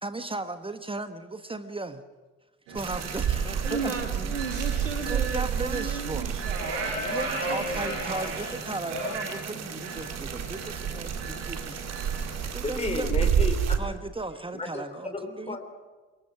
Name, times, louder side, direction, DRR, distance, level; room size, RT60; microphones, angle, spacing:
voice 1, 0.0-2.0 2.7-4.3 5.1-6.3 7.1-11.8 12.5-13.3 13.8-15.6, right 2 dB, 15° right, 10 dB, 1.3 m, -36 dB
sound 1, 2.7-12.5, right 2 dB, 70° right, 7.0 m, -36 dB
sound 2, 2.8-13.8, right 8 dB, 45° right, 2.4 m, -31 dB
voice 2, 3.4-7.2 7.4-8.0, right 5 dB, 90° right, 7 dB, 1.8 m, -36 dB
voice 3, 12.6-13.8 14.5-14.8 15.1-15.6, left 3 dB, 15° left, 5 dB, 4.2 m, -32 dB
25.5 x 22.0 x 6.1 m, 1.3 s
figure-of-eight pair, 55°, 36 cm